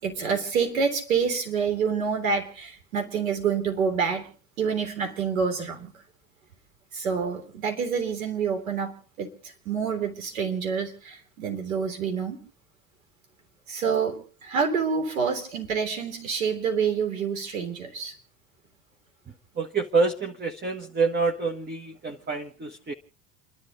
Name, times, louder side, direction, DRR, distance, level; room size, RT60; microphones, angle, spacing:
voice 1, 0.0-4.3 4.6-5.9 6.9-12.4 13.7-18.1, right 6 dB, 90° right, 4 dB, 3.7 m, -27 dB
voice 2, 19.5-22.9, right 4 dB, 25° right, 4 dB, 1.5 m, -27 dB
29.5 x 11.5 x 4.0 m, 0.38 s
hypercardioid pair, 80°, 40 cm